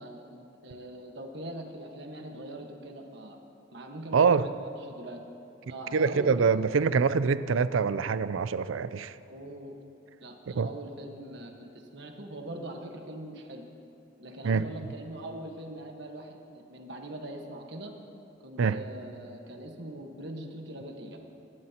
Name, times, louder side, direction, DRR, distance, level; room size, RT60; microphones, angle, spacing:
voice 1, 0.0-3.4 3.7-5.2 5.7-6.4 9.3-9.8 10.2-13.6 14.2-17.9 18.4-21.2, right 1 dB, 60° right, 1.4 m, -42 dB
voice 2, 4.1-4.5 5.9-9.1 10.6-10.7 14.4-14.7 18.6-18.8, right 5 dB, 85° right, 0.4 m, -25 dB
25.5 x 11.5 x 2.9 m
head